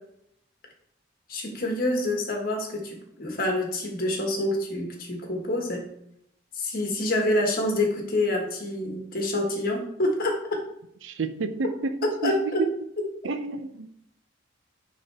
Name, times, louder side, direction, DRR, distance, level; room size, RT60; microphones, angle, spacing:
voice 1, 1.3-5.9 6.5-10.6 12.2-12.6, left 1 dB, 50° left, 1 dB, 1.6 m, -27 dB
voice 2, 11.0-12.7 13.2-13.9, right 4 dB, 70° right, 10 dB, 0.6 m, -30 dB
9.2 x 3.8 x 3.4 m, 0.73 s
head